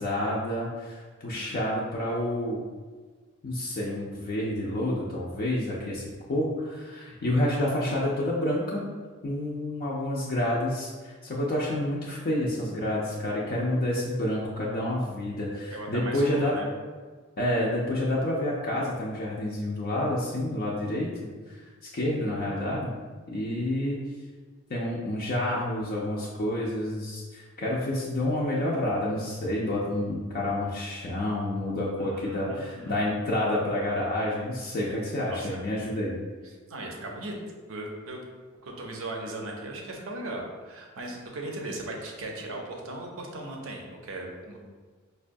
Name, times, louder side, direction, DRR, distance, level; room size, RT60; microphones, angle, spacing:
voice 1, 0.0-2.6 3.4-8.9 9.2-16.6 17.4-22.9 23.3-24.1 24.7-36.1, left 1 dB, 45° left, -5 dB, 0.5 m, -29 dB
voice 2, 1.3-1.7 15.7-16.7 32.0-33.0 35.3-35.6 36.4-37.3 37.7-38.2 38.6-44.6, right 1 dB, 70° right, 1 dB, 0.6 m, -38 dB
4.6 x 2.2 x 2.5 m, 1.4 s
head